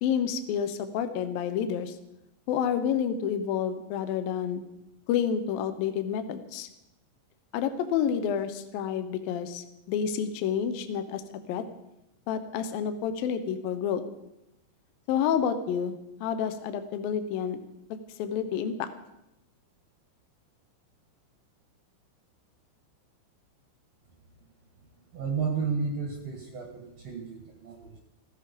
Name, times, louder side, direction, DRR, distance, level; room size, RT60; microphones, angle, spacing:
voice 1, 0.0-2.0 2.5-4.6 5.1-6.7 7.5-11.2 11.5-11.6 12.3-14.0 15.1-17.6 18.2-18.9, left 8 dB, 80° left, 9 dB, 2.1 m, -29 dB
voice 2, 25.1-28.0, right 5 dB, 70° right, 2 dB, 1.6 m, -32 dB
15.0 x 15.0 x 5.1 m, 0.89 s
omnidirectional pair, 5.6 m